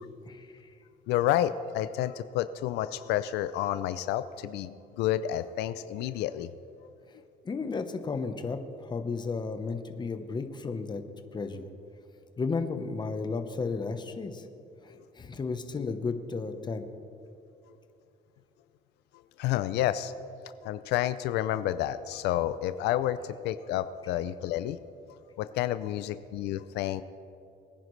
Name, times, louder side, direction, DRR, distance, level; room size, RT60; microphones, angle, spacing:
voice 1, 1.1-6.5 19.4-20.1 20.6-23.2 23.4-24.8 25.4-27.0, left 12 dB, 85° left, 13 dB, 0.4 m, -30 dB
voice 2, 7.4-11.0 11.3-11.7 12.4-14.4 14.8-16.9, left 4 dB, 25° left, 7 dB, 1.0 m, -33 dB
21.5 x 10.0 x 3.2 m, 2.7 s
cardioid pair, 110°, 17 cm